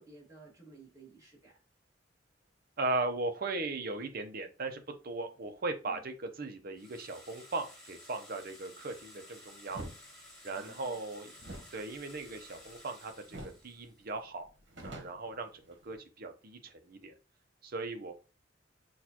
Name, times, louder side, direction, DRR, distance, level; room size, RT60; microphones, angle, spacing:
voice 1, 0.0-1.5 5.9-6.0 10.5-11.0, right 3 dB, 15° right, -4 dB, 1.7 m, -55 dB
voice 2, 2.8-9.9 10.4-11.3 11.7-14.4 14.8-17.1 17.6-18.1, right 3 dB, 55° right, 6 dB, 0.7 m, -38 dB
sound 1, 6.7-14.1, left 1 dB, 5° left, 1.6 m, -54 dB
sound 2, 9.7-10.0 11.4-12.9 13.3-13.7 14.0-14.1 14.4-16.0, right 1 dB, 75° right, 1.1 m, -46 dB
6.4 x 2.4 x 2.9 m, 0.33 s
head